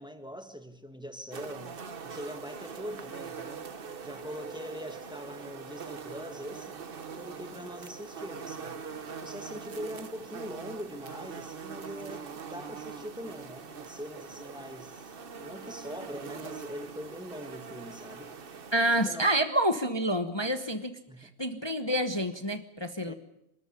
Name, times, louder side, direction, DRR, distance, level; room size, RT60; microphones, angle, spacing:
voice 1, 0.0-3.7 4.0-6.8 7.1-8.9 9.2-18.3 18.9-19.3 21.1-21.3 23.1-23.2, equal, ahead, 7 dB, 1.6 m, -42 dB
sound 1, 1.3-19.1, right 6 dB, 40° right, 1.0 m, -43 dB
voice 2, 18.7-20.9 21.2-23.1, right 1 dB, 20° left, 8 dB, 0.8 m, -28 dB
25.0 x 13.5 x 9.9 m, 0.83 s
omnidirectional pair, 2.0 m